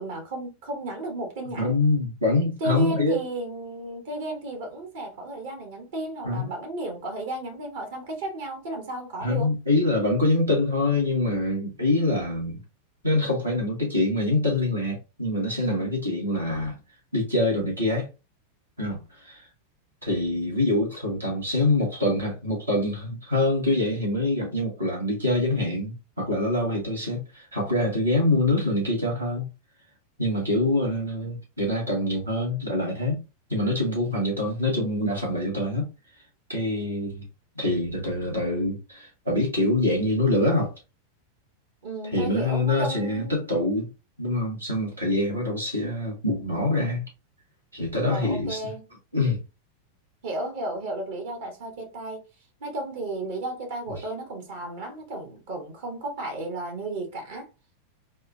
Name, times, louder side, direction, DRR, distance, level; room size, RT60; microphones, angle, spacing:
voice 1, 0.0-1.8 2.6-9.5 41.8-43.4 48.0-48.8 50.2-52.2 52.6-57.5, right 2 dB, 55° right, 1.0 m, -33 dB
voice 2, 1.6-3.2 6.2-6.5 9.2-12.6 13.0-16.8 17.1-18.1 18.8-19.5 20.0-29.5 30.2-33.2 33.5-35.9 36.5-37.3 37.5-40.7 42.1-43.9 44.2-47.0 47.7-48.7 49.1-49.4, left 2 dB, 80° right, 1.5 m, -25 dB
3.5 x 2.3 x 2.5 m
figure-of-eight pair, 90°, 0 cm